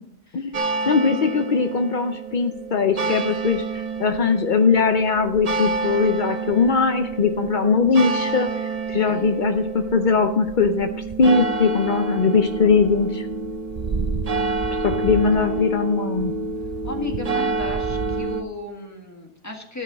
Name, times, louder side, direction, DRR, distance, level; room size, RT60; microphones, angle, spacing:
sound 1, 0.5-18.4, right 4 dB, 45° right, 0.4 m, -28 dB
voice 1, 0.9-10.9 11.2-13.3 14.8-16.4, left 5 dB, 60° left, 6 dB, 0.5 m, -20 dB
voice 2, 9.1-9.4 15.3-15.7 16.8-19.8, left 2 dB, 10° left, 2 dB, 1.6 m, -35 dB
13.5 x 5.5 x 6.2 m, 0.80 s
omnidirectional pair, 1.7 m